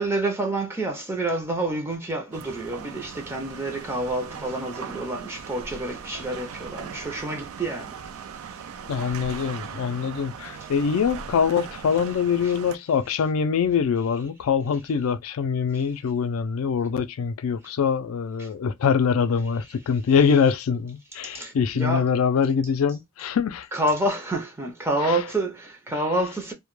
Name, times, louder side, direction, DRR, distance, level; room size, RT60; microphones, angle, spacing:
voice 1, 0.0-7.9 12.4-12.5 21.3-22.2 23.7-26.5, right 1 dB, 10° right, 0.4 m, -28 dB
sound 1, 2.3-12.8, right 6 dB, 85° right, 0.4 m, -39 dB
voice 2, 8.9-23.7 25.0-25.2, left 6 dB, 85° left, 0.4 m, -24 dB
2.1 x 2.1 x 3.0 m
head